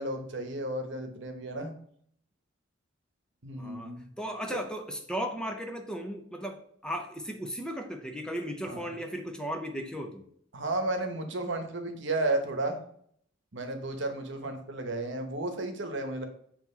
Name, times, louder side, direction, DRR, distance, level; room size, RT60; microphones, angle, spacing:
voice 1, 0.0-1.7 3.4-4.1 4.5-4.6 8.6-8.9 10.5-12.8 13.5-16.3, right 2 dB, 65° right, 6 dB, 1.1 m, -33 dB
voice 2, 3.6-10.2, equal, 5° left, 4 dB, 0.6 m, -36 dB
7.7 x 3.0 x 5.4 m, 0.64 s
head